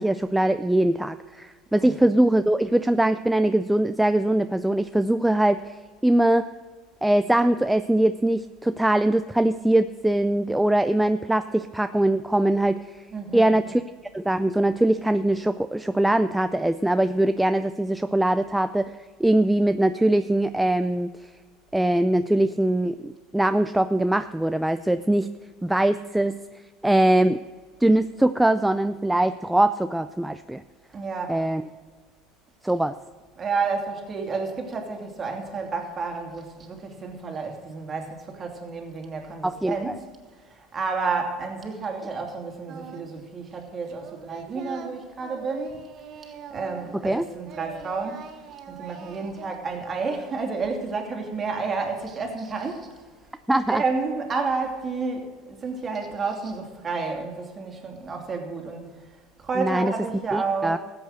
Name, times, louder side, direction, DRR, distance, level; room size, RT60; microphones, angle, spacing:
voice 1, 0.0-6.5 7.0-13.1 13.3-13.8 14.1-21.3 21.7-25.3 25.6-26.4 26.8-27.4 27.8-30.6 31.3-31.6 32.6-32.9 39.4-39.8 47.0-47.2 53.5-53.8 59.6-59.9 60.3-60.8, right 1 dB, 5° right, 0.4 m, -22 dB
voice 2, 13.1-13.6 30.9-31.5 33.4-45.8 46.5-48.3 48.7-53.0 53.5-59.0 59.4-60.8, right 4 dB, 30° right, 2.6 m, -30 dB
Singing, 42.7-43.2 43.5-47.2 47.4-49.5, right 7 dB, 50° right, 1.3 m, -42 dB
14.5 x 8.0 x 6.5 m
supercardioid pair, 105°, 0 cm